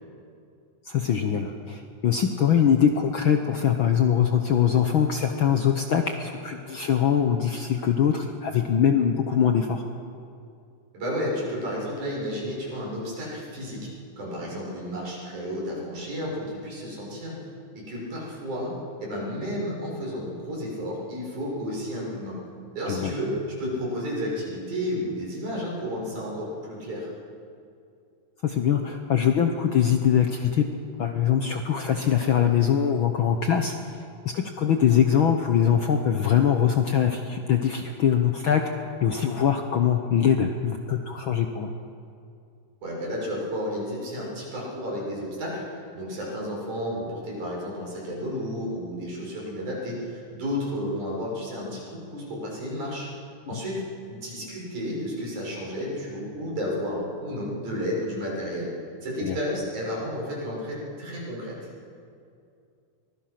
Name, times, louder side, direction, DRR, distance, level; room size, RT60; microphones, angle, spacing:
voice 1, 0.8-9.8 22.9-23.1 28.4-30.6 31.0-34.0 34.2-38.6 39.0-41.7 53.5-53.6 59.2-59.4, left 8 dB, 60° left, 5 dB, 1.3 m, -22 dB
voice 2, 10.9-13.9 14.2-17.4 17.7-18.7 19.0-22.4 22.7-27.1 42.8-45.6 45.9-53.1 53.5-53.8 54.1-58.7 59.0-61.7, equal, 80° right, -4 dB, 7.6 m, -32 dB
23.5 x 20.5 x 5.9 m, 2.5 s
omnidirectional pair, 3.4 m